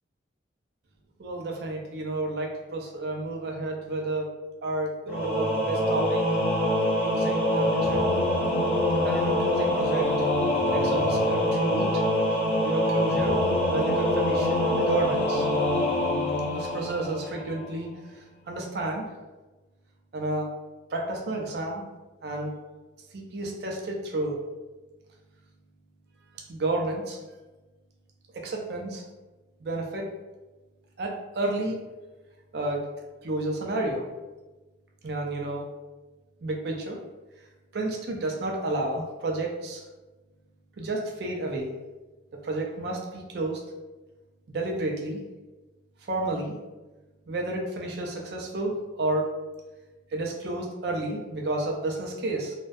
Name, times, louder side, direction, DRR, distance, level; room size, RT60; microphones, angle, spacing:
voice 1, 1.2-4.3 4.6-6.2 7.0-8.0 9.0-10.3 10.7-12.0 12.6-13.4 13.7-15.5 16.5-17.9 18.5-19.1 20.1-20.5 20.9-21.8 22.2-22.6 23.1-24.4 26.5-27.2 28.3-29.0 29.6-30.1 31.0-31.8 32.5-32.9 33.2-34.1 35.0-35.7 36.4-37.0 37.7-39.8 40.8-41.7 42.4-43.6 44.5-45.2 46.1-46.5 47.3-49.3 50.1-52.5, right 2 dB, 60° right, 1 dB, 0.4 m, -31 dB
Singing / Musical instrument, 5.1-17.6, left 1 dB, 30° left, 0.5 m, -25 dB
2.5 x 2.1 x 2.2 m, 1.2 s
head